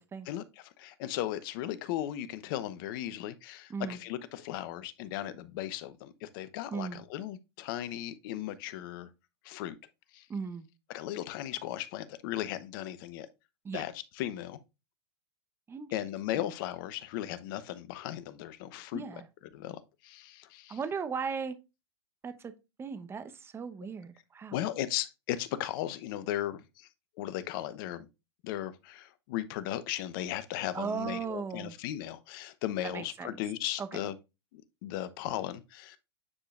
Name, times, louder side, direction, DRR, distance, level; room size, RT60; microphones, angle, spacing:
voice 1, 0.3-9.1 9.4-9.7 10.1-10.2 10.9-13.3 13.7-14.6 15.9-19.0 19.5-20.8 24.5-26.9 27.2-28.0 28.4-34.1 34.5-36.0, left 13 dB, 55° left, 0.9 m, -36 dB
voice 2, 3.7-4.0 6.7-7.0 10.3-10.7 13.6-13.8 15.7-15.9 16.3-16.4 18.9-19.3 20.7-21.6 22.2-22.5 22.8-24.6 30.7-31.8 32.8-33.3 33.8-34.0, right 5 dB, 15° right, 1.0 m, -37 dB
9.7 x 5.0 x 2.5 m
hypercardioid pair, 115°, 14 cm